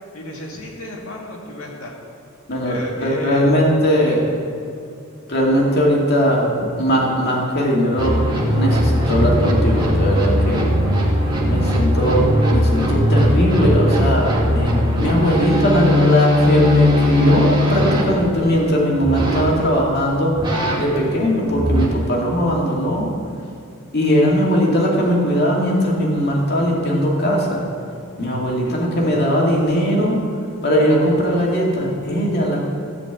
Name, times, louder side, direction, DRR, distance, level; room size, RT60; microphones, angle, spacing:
voice 1, 0.1-2.0 2.6-3.5 4.0-4.1 28.6-29.2, left 1 dB, 70° left, -1 dB, 2.3 m, -33 dB
voice 2, 2.5-4.2 5.3-8.1 8.5-10.7 11.5-20.4 20.8-23.1 23.9-27.7 28.2-30.3 30.6-32.7, equal, 50° left, -3 dB, 2.4 m, -19 dB
sound 1, 8.0-18.0 19.0-19.5 20.3-20.8 21.5-21.9, left 1 dB, 20° right, 2.0 m, -18 dB
15.0 x 5.1 x 8.2 m, 2.5 s
head